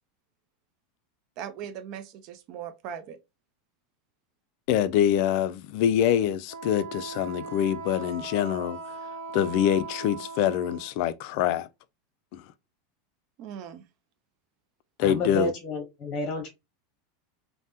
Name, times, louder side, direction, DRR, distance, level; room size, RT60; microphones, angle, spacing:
voice 1, 1.4-3.2 13.4-13.8, right 8 dB, 45° right, 0.5 m, -39 dB
voice 2, 4.7-8.8 9.3-11.7 12.3-12.4 15.0-15.5, left 10 dB, 55° left, 0.3 m, -25 dB
Wind instrument woodwind instrument, 6.5-10.9, right 4 dB, 75° right, 0.8 m, -39 dB
voice 3, 15.0-16.5, left 1 dB, 25° left, 0.9 m, -30 dB
3.3 x 2.1 x 2.8 m
supercardioid pair, 155°, 0 cm